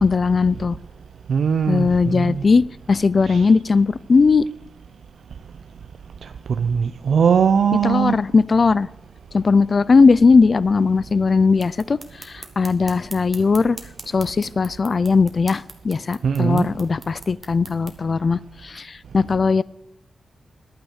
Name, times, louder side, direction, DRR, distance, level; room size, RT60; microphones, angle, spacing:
voice 1, 0.0-0.8 1.7-2.6 2.9-4.4 7.8-8.9 9.3-13.8 14.1-19.6, left 4 dB, 40° left, 20 dB, 0.4 m, -18 dB
voice 2, 1.3-2.4 3.3-3.5 6.6-8.2 16.2-16.7, right 7 dB, 70° right, 10 dB, 0.5 m, -20 dB
sound 1, 11.5-18.0, right 2 dB, 25° right, 1.6 m, -43 dB
11.5 x 9.0 x 6.5 m, 0.79 s
wide cardioid pair, 135°, 0 cm